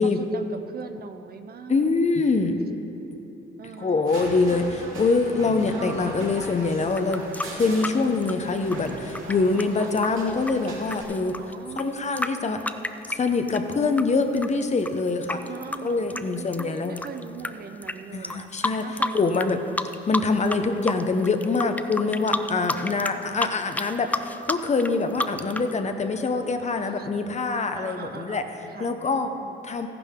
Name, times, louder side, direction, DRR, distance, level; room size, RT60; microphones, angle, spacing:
voice 1, 0.0-1.9 3.6-4.1 9.7-10.0 11.4-12.2 15.3-18.5 18.8-19.6 22.7-23.1 26.8-27.1 27.7-29.6, right 6 dB, 50° right, 8 dB, 0.7 m, -41 dB
voice 2, 1.7-2.5 3.8-7.2 7.5-11.4 11.8-12.6 13.1-15.4 15.8-17.0 18.1-18.8 19.1-19.6 20.1-24.1 24.5-28.4 28.8-29.3 29.6-29.9, left 3 dB, 35° left, 7 dB, 0.9 m, -24 dB
sound 1, 4.0-11.0, right 2 dB, 85° right, 2.6 m, -38 dB
sound 2, 6.9-14.0 14.4-17.5 17.8-17.9 18.2-19.5 19.8-20.6 20.8-25.7, left 2 dB, 10° left, 0.4 m, -30 dB
14.0 x 11.0 x 3.7 m, 2.9 s
cardioid pair, 90°, 20 cm